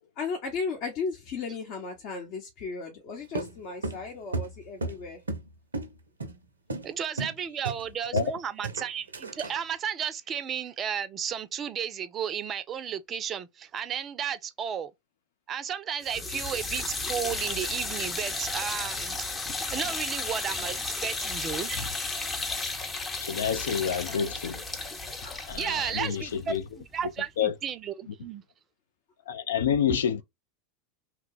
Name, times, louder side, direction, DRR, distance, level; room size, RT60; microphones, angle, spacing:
voice 1, 0.2-5.2 19.5-19.6 21.7-21.9 24.1-24.3 25.2-25.5 29.6-30.0, left 5 dB, 45° left, 0.9 m, -35 dB
sound 1, 3.3-5.5 5.7-5.9 6.2-6.4 6.7-6.9 7.2-7.4 7.6-8.4 8.6-9.6, right 3 dB, 80° right, 0.5 m, -33 dB
voice 2, 6.8-14.9 15.5-19.3 19.7-21.8 25.6-28.4, right 8 dB, 30° right, 0.5 m, -33 dB
sound 2, 16.0-27.1, left 3 dB, 20° left, 0.7 m, -34 dB
voice 3, 23.2-24.7 25.5-26.6 27.4-27.5 29.3-30.2, left 8 dB, 70° left, 0.4 m, -28 dB
2.9 x 2.2 x 3.9 m
figure-of-eight pair, 85°, 0 cm